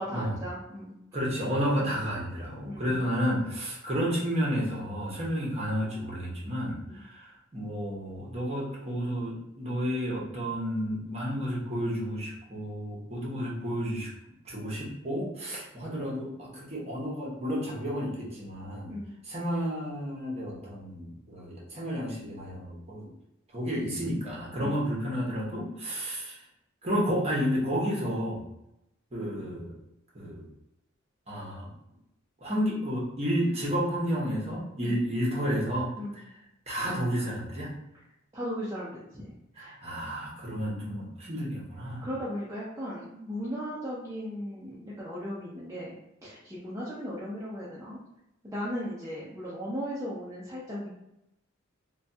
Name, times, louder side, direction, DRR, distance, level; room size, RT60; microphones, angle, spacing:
voice 1, 0.0-0.9 1.8-2.0 2.6-3.0 6.8-7.0 18.9-19.1 24.6-24.8 34.8-35.0 36.0-36.2 38.3-39.7 42.0-45.9 46.2-48.0 48.4-51.0, equal, 15° right, -9 dB, 0.6 m, -37 dB
voice 2, 1.1-14.1 14.4-18.9 19.2-23.1 23.5-26.4 26.8-28.4 29.1-29.7 30.1-30.4 31.3-31.7 32.4-35.9 36.7-37.8 39.6-42.1, equal, 30° right, -5 dB, 1.0 m, -31 dB
3.1 x 2.3 x 2.7 m, 0.85 s
head